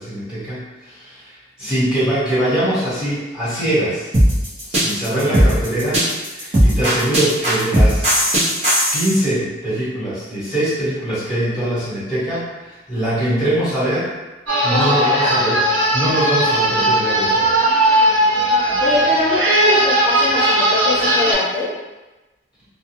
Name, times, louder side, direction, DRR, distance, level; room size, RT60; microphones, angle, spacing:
voice 1, 0.0-1.3 1.6-4.1 4.7-6.0 6.2-8.2 8.9-14.1 14.6-17.5, right 1 dB, 5° right, -13 dB, 1.2 m, -22 dB
sound 1, 4.1-9.2, equal, 35° right, 0.8 m, -16 dB
sound 2, 14.5-21.3, right 1 dB, 85° right, 0.7 m, -17 dB
voice 2, 14.7-15.3 18.8-21.7, left 2 dB, 30° left, -11 dB, 0.7 m, -22 dB
2.3 x 2.3 x 2.9 m, 1.1 s
head